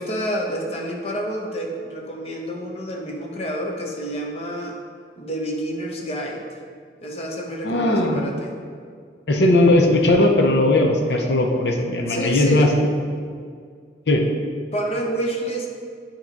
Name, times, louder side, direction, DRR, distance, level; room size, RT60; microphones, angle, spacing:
voice 1, 0.0-4.8 5.2-6.6 7.0-8.5 12.1-12.7 14.7-15.7, right 1 dB, 35° left, 0 dB, 0.9 m, -28 dB
voice 2, 7.6-8.2 9.3-12.7 14.1-14.2, left 1 dB, 70° left, 2 dB, 0.7 m, -18 dB
8.5 x 3.0 x 5.1 m, 2.1 s
head